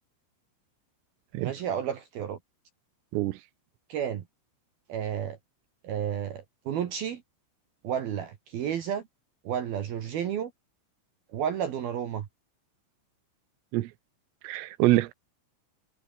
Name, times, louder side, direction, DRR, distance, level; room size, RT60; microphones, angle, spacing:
voice 1, 1.4-2.4 3.9-4.2 4.9-5.4 5.8-7.2 7.8-9.0 9.4-10.5 11.3-12.3, right 9 dB, 60° right, 3.1 m, -31 dB
voice 2, 14.4-15.1, right 18 dB, 90° right, 3.7 m, -25 dB
omnidirectional pair, 5.8 m